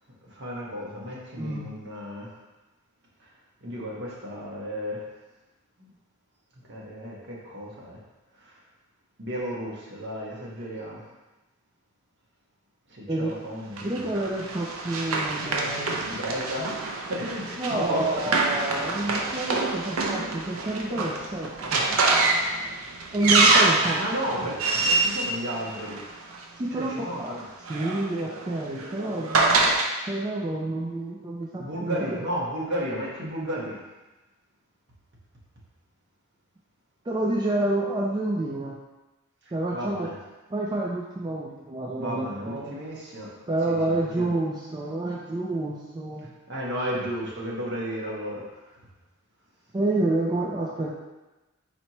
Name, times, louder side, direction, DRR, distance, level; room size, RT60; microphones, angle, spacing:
voice 1, 0.2-2.3 3.6-5.0 5.8-5.9 6.7-8.0 8.4-8.5 9.2-11.0 12.9-14.0 16.0-18.4 23.9-26.0 26.7-27.4 31.5-33.8 39.7-40.2 41.9-43.3 43.7-44.3 46.5-48.4, equal, 55° right, -4 dB, 1.1 m, -33 dB
voice 2, 1.4-1.7 13.1-13.4 13.8-16.0 17.6-22.0 23.1-24.0 26.6-27.3 27.7-29.7 30.0-32.2 37.1-38.8 39.5-40.1 40.5-42.8 43.5-46.3 49.7-50.9, right 2 dB, 20° right, -3 dB, 0.3 m, -29 dB
Run, 13.8-26.4 27.4-29.9, right 3 dB, 75° right, 0.6 m, -26 dB
sound 1, 18.0-19.1 20.9-21.7, left 2 dB, 40° left, 0.6 m, -44 dB
4.3 x 4.2 x 2.9 m, 1.1 s
head